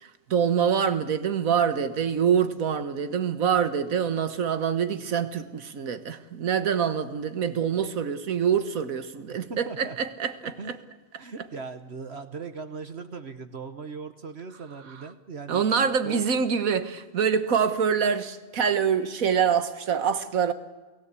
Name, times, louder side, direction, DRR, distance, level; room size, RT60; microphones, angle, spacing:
voice 1, 0.0-10.8 15.5-20.5, right 7 dB, 80° right, 1.7 m, -25 dB
voice 2, 9.3-10.0 10.4-10.7 11.2-15.6 16.0-16.4, right 4 dB, 50° right, 1.4 m, -39 dB
28.5 x 16.5 x 8.3 m
omnidirectional pair, 1.4 m